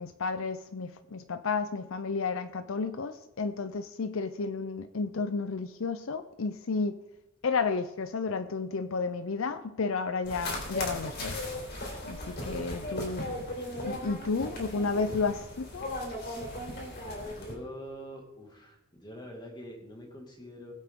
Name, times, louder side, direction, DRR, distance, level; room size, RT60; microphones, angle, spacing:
voice 1, 0.0-7.0 7.4-11.4 12.1-13.3 13.8-15.9, left 4 dB, 65° left, 10 dB, 0.6 m, -32 dB
sound 1, 10.3-17.6, left 1 dB, 45° left, 3.7 m, -37 dB
voice 2, 14.7-15.1 17.3-20.7, equal, 20° left, 1 dB, 2.2 m, -45 dB
20.5 x 8.1 x 3.8 m, 0.92 s
head